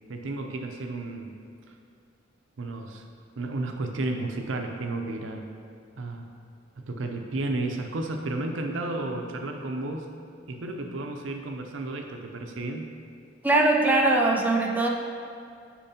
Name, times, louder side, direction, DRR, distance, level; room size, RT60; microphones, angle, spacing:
voice 1, 0.1-1.4 2.6-3.0 3.4-5.5 6.0-6.3 6.8-10.1 10.5-12.9, right 2 dB, 75° right, 4 dB, 0.6 m, -32 dB
voice 2, 13.4-14.9, right 2 dB, 10° right, -1 dB, 0.4 m, -21 dB
8.8 x 4.6 x 2.8 m, 2.4 s
head